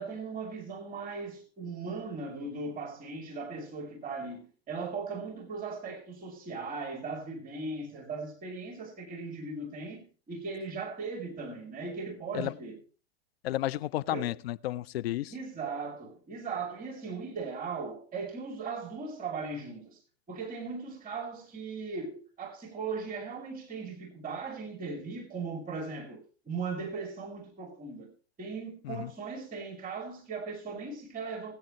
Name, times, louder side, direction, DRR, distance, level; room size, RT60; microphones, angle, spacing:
voice 1, 0.0-12.8 14.1-14.3 15.3-20.0 20.3-28.1 28.4-31.5, right 4 dB, 25° right, 2.7 m, -38 dB
voice 2, 13.4-15.3 28.8-29.1, left 14 dB, 65° left, 0.6 m, -32 dB
19.5 x 8.8 x 3.0 m
hypercardioid pair, 110°, 33 cm